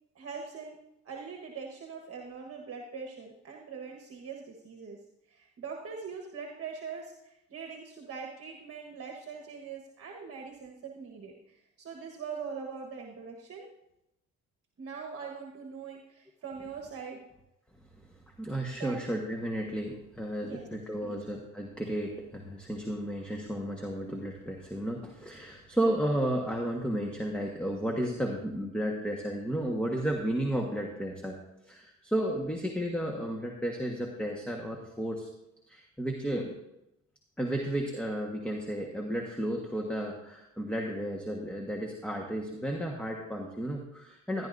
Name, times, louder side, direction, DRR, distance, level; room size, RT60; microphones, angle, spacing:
voice 1, 0.1-0.8 1.0-5.0 5.3-13.7 14.8-17.2 18.8-19.0 20.4-20.7 21.0-21.2, right 5 dB, 50° right, 1 dB, 1.4 m, -42 dB
voice 2, 18.4-31.4 31.6-35.3 35.7-36.5 37.4-44.5, right 1 dB, 5° left, 1 dB, 1.4 m, -33 dB
14.5 x 11.0 x 2.6 m, 0.86 s
cardioid pair, 90°, 30 cm